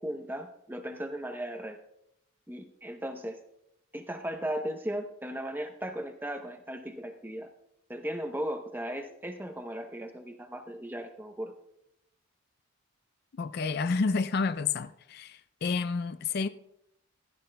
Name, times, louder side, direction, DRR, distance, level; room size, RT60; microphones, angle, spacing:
voice 1, 0.0-1.8 2.5-3.4 3.9-7.5 7.9-11.5, equal, 10° right, 0.7 m, -37 dB
voice 2, 13.4-16.5, left 4 dB, 45° left, 0.4 m, -30 dB
16.5 x 14.0 x 2.3 m
head